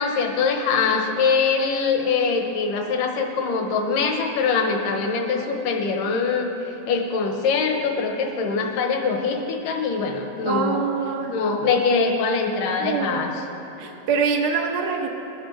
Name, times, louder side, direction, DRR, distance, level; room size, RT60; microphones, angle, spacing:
voice 1, 0.0-6.5 6.9-10.8 11.3-13.3, left 5 dB, 75° left, 3 dB, 2.6 m, -23 dB
voice 2, 10.4-11.4 12.8-13.5 13.8-15.1, right 5 dB, 90° right, 2 dB, 1.1 m, -25 dB
20.5 x 13.0 x 3.3 m, 3.0 s
omnidirectional pair, 4.0 m